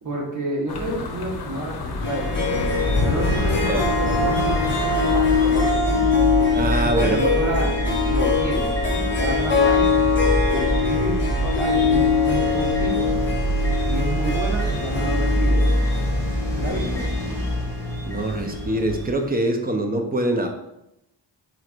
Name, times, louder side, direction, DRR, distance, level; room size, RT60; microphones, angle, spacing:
voice 1, 0.0-6.0 6.8-7.7 8.1-10.1 10.5-13.1 13.8-15.6 16.6-17.1, right 1 dB, 45° right, -4 dB, 1.6 m, -30 dB
sound 1, 0.7-5.7, left 3 dB, 55° left, 0.7 m, -28 dB
Harp, 2.0-18.8, left 5 dB, 25° left, 1.0 m, -23 dB
sound 2, 2.5-19.1, equal, 5° left, 1.2 m, -25 dB
voice 2, 6.5-7.2 18.0-20.5, right 1 dB, 20° right, 4 dB, 0.7 m, -23 dB
4.6 x 4.4 x 2.5 m, 0.87 s
wide cardioid pair, 80°, 44 cm